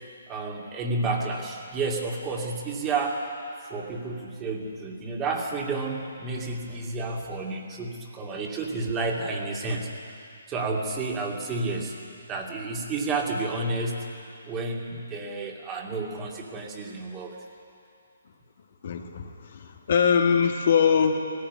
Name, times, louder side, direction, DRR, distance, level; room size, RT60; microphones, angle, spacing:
voice 1, 0.3-3.3 3.6-9.9 10.5-12.0 12.3-14.1 14.5-17.4, right 3 dB, 20° right, 0 dB, 2.5 m, -30 dB
voice 2, 18.8-21.2, left 6 dB, 55° left, 4 dB, 1.6 m, -22 dB
19.0 x 14.5 x 9.7 m, 2.5 s
figure-of-eight pair, 135°, 0 cm